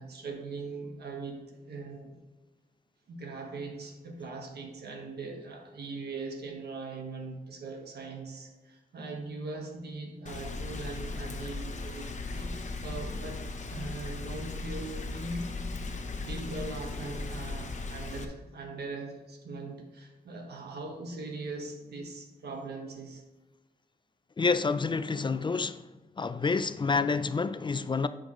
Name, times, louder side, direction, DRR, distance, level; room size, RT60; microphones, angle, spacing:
voice 1, 0.0-2.2 3.1-15.6 15.9-23.2, right 3 dB, 90° right, 1.4 m, -40 dB
Rain, 10.3-18.3, left 3 dB, 45° left, 0.8 m, -37 dB
voice 2, 24.4-25.8 26.2-28.1, left 4 dB, 30° left, 0.4 m, -28 dB
10.0 x 5.3 x 3.1 m
wide cardioid pair, 95°, 16 cm